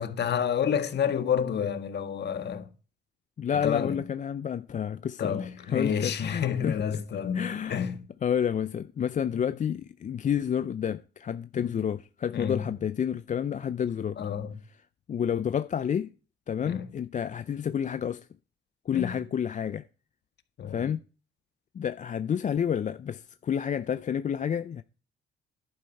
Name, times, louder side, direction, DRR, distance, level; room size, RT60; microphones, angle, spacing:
voice 1, 0.0-2.7 3.5-4.0 5.2-8.0 9.3-9.5 11.5-11.7 12.3-12.7 14.2-14.6 16.6-16.8 18.9-19.1 20.6-20.9, left 8 dB, 60° left, 1.6 m, -29 dB
voice 2, 3.4-7.0 7.3-7.8 8.2-14.2 15.1-16.1 16.5-18.3 18.9-19.8 20.7-21.0 21.7-24.8, left 8 dB, 40° left, 0.5 m, -30 dB
11.5 x 8.9 x 4.6 m
cardioid pair, 90°, 20 cm